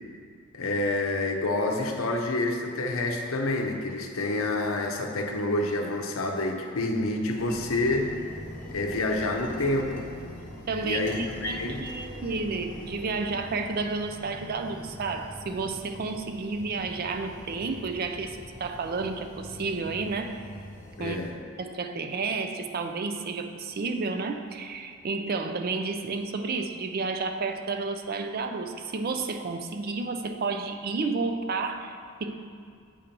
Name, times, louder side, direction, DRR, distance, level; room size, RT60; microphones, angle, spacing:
voice 1, 0.5-8.1 8.7-10.1 10.8-11.8 21.0-21.3, left 2 dB, 75° left, 3 dB, 0.7 m, -28 dB
sound 1, 7.4-21.3, left 1 dB, 40° left, 0.8 m, -43 dB
voice 2, 10.7-20.4 21.0-21.2 21.6-32.3, right 4 dB, 45° right, 6 dB, 0.4 m, -31 dB
7.7 x 2.9 x 5.1 m, 2.3 s
head